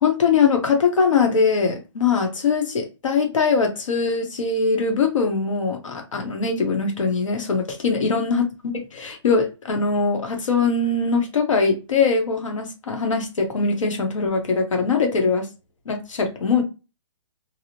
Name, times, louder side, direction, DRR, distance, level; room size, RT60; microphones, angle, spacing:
voice 1, 0.0-8.4 8.9-15.5 15.9-16.6, left 4 dB, 90° left, 0.9 m, -21 dB
2.7 x 2.0 x 2.7 m
hypercardioid pair, 160°, 16 cm